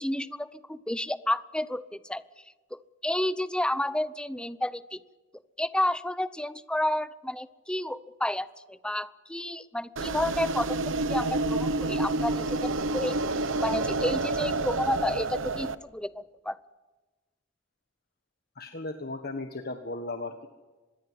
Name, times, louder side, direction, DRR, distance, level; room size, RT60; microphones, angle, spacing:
voice 1, 0.0-2.2 2.7-5.0 5.6-13.2 13.6-15.7 15.9-16.6, left 1 dB, 5° left, 15 dB, 0.7 m, -31 dB
sound 1, 10.0-15.7, right 2 dB, 90° right, 1.2 m, -29 dB
voice 2, 18.6-20.5, left 2 dB, 55° left, 6 dB, 1.5 m, -36 dB
25.0 x 21.0 x 8.1 m, 1.2 s
head